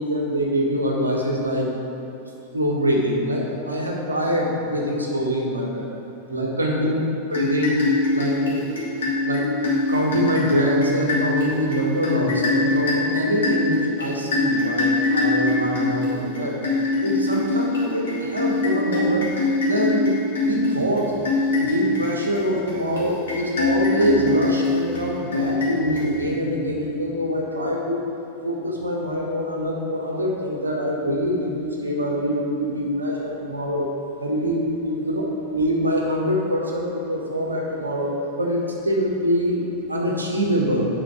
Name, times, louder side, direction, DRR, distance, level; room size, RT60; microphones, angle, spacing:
voice 1, 0.0-1.8 2.5-5.9 6.3-7.0 7.3-7.8 8.1-8.6 9.2-9.4 9.9-16.6 17.0-19.3 19.6-20.1 20.4-21.2 21.6-28.1 28.4-33.8 34.2-35.2 35.5-40.9, equal, 80° right, -1 dB, 1.4 m, -24 dB
sound 1, 7.3-26.5, left 2 dB, 65° left, 1.9 m, -23 dB
9.0 x 5.6 x 4.9 m, 3.0 s
figure-of-eight pair, 90°, 0 cm